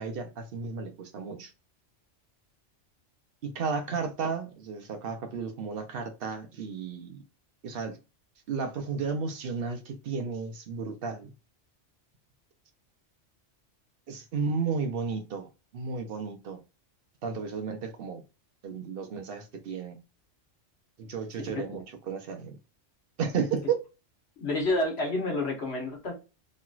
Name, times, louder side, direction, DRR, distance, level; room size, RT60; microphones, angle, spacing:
voice 1, 0.0-1.5 3.4-7.2 7.6-8.0 8.5-11.3 14.1-15.5 15.7-16.6 17.2-18.2 18.6-20.0 21.0-22.6 23.2-23.8, right 5 dB, 60° right, 0.7 m, -33 dB
voice 2, 24.4-26.1, left 2 dB, 60° left, 1.3 m, -29 dB
3.1 x 2.9 x 2.3 m
omnidirectional pair, 1.2 m